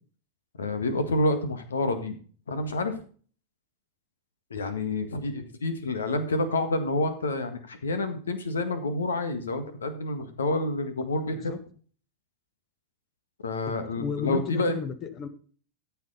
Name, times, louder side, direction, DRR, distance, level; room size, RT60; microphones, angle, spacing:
voice 1, 0.6-2.2 2.5-3.0 4.5-11.5 13.4-14.7, left 2 dB, 70° left, 9 dB, 1.6 m, -28 dB
voice 2, 11.3-11.6 13.7-15.3, left 7 dB, 30° left, 11 dB, 1.5 m, -34 dB
13.5 x 7.3 x 4.0 m, 0.42 s
figure-of-eight pair, 90°, 0 cm